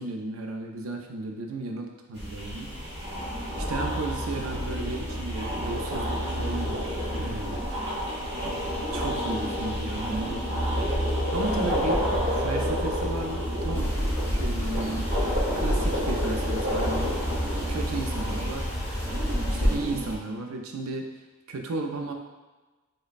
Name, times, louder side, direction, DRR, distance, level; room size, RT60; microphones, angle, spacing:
voice 1, 0.0-2.7 3.1-3.2 3.6-7.6 8.3-8.6 8.9-10.5 11.3-12.1 12.3-13.9 14.3-15.1 15.5-17.2 17.7-18.7 19.4-21.1 21.5-22.1, right 2 dB, 90° right, 3 dB, 0.5 m, -34 dB
sound 1, 2.2-20.2, equal, 55° right, 0.9 m, -29 dB
sound 2, 2.7-16.1, equal, 20° right, 0.3 m, -49 dB
sound 3, 13.7-19.7, equal, 10° left, 0.7 m, -30 dB
3.2 x 2.2 x 4.0 m, 1.2 s
head